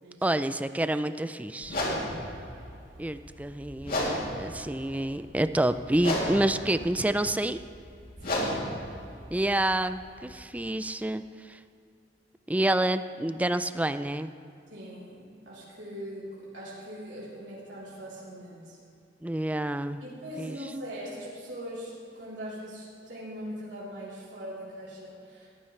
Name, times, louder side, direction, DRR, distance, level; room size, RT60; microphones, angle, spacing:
voice 1, 0.2-1.8 3.0-7.6 9.3-11.6 12.5-14.3 19.2-20.0 20.4-20.6, right 1 dB, 10° right, 11 dB, 0.4 m, -28 dB
sound 1, 1.6-10.4, left 1 dB, 55° left, 2.9 m, -34 dB
voice 2, 2.1-2.4 8.3-8.6 14.7-18.8 20.0-25.5, equal, 75° right, -8 dB, 3.6 m, -41 dB
19.5 x 14.5 x 3.3 m, 2.6 s
head